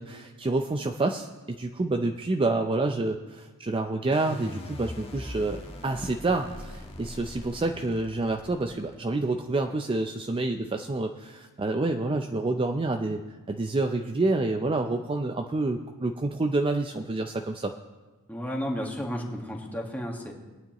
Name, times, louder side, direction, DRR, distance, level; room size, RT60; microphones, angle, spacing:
voice 1, 0.0-13.2 13.5-17.7, right 2 dB, 25° right, 4 dB, 0.5 m, -28 dB
sound 1, 4.1-9.2, left 1 dB, 25° left, 1.4 m, -41 dB
voice 2, 18.3-20.3, equal, 10° left, -1 dB, 1.5 m, -32 dB
22.0 x 9.3 x 3.0 m, 1.2 s
head